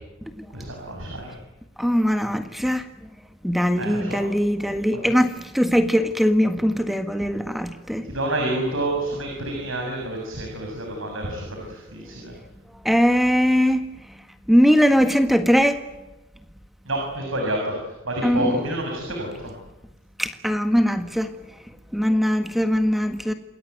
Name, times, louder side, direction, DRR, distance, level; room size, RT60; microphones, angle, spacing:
voice 1, 0.5-1.4 3.7-4.2 4.6-5.1 8.0-12.3 16.9-19.5, right 1 dB, 75° right, 1 dB, 7.2 m, -29 dB
voice 2, 1.8-2.8 3.4-8.1 12.8-13.8 14.5-15.8 18.2-18.5 20.2-21.3 21.9-23.3, equal, ahead, 7 dB, 1.5 m, -20 dB
28.5 x 21.0 x 9.4 m, 1.0 s
head